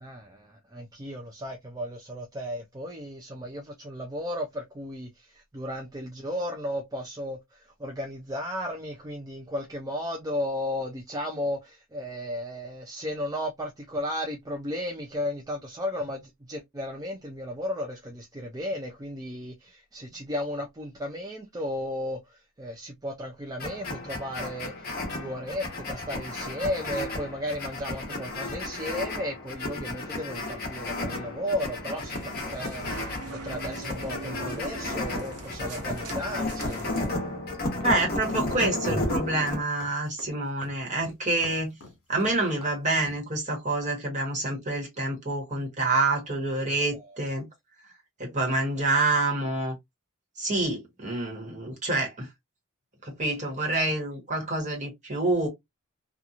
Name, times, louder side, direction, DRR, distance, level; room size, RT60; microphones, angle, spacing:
voice 1, 0.0-36.8 46.9-47.2, left 1 dB, 15° right, 0.4 m, -34 dB
sound 1, 23.6-39.6, left 2 dB, 45° left, 1.1 m, -33 dB
sound 2, 32.0-37.1, right 3 dB, 80° right, 0.7 m, -41 dB
sound 3, 37.8-43.2, left 2 dB, 65° left, 1.3 m, -46 dB
voice 2, 37.8-41.7 42.1-47.5 48.2-49.7 50.4-52.3 53.0-55.5, right 2 dB, 35° right, 1.3 m, -27 dB
2.8 x 2.4 x 2.4 m
head